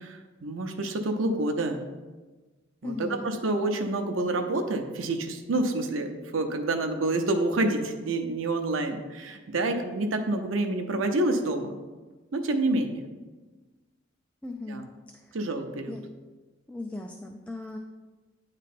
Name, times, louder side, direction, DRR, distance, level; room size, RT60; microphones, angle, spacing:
voice 1, 0.0-1.8 2.8-11.8 12.3-13.1 14.7-14.8 15.3-15.9, right 2 dB, 85° right, 5 dB, 0.7 m, -28 dB
voice 2, 2.8-3.3 14.4-14.9 15.2-15.4 15.9-16.0 16.7-17.8, left 2 dB, 5° left, 2 dB, 0.3 m, -37 dB
9.2 x 3.2 x 4.2 m, 1.3 s
head